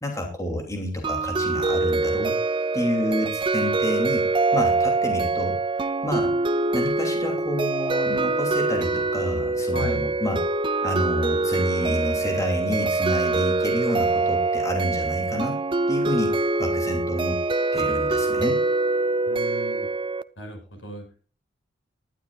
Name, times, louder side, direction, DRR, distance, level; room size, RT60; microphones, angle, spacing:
voice 1, 0.0-2.3 2.7-6.3 6.7-10.4 10.8-15.6 15.9-17.4 17.7-18.6, left 1 dB, 15° left, 2 dB, 2.9 m, -29 dB
sound 1, 1.0-20.2, right 3 dB, 25° right, 0.5 m, -24 dB
voice 2, 9.7-10.2 19.3-19.9 20.4-21.0, right 1 dB, 80° left, 4 dB, 6.7 m, -36 dB
19.0 x 12.0 x 2.4 m, 0.36 s
head